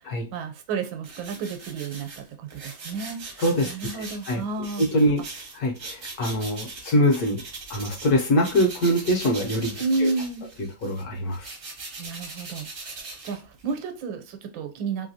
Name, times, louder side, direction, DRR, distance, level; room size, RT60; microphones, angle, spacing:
voice 1, 0.3-4.8 9.8-10.4 12.0-15.1, right 4 dB, 85° right, 6 dB, 1.4 m, -31 dB
sound 1, 1.0-8.1 8.4-13.8, right 3 dB, 60° right, 0.6 m, -40 dB
voice 2, 3.4-4.4 4.8-5.2 5.5-7.4 7.7-10.1 10.8-11.5, equal, 65° left, 1 dB, 1.1 m, -24 dB
3.2 x 2.7 x 2.7 m, 0.30 s
omnidirectional pair, 2.1 m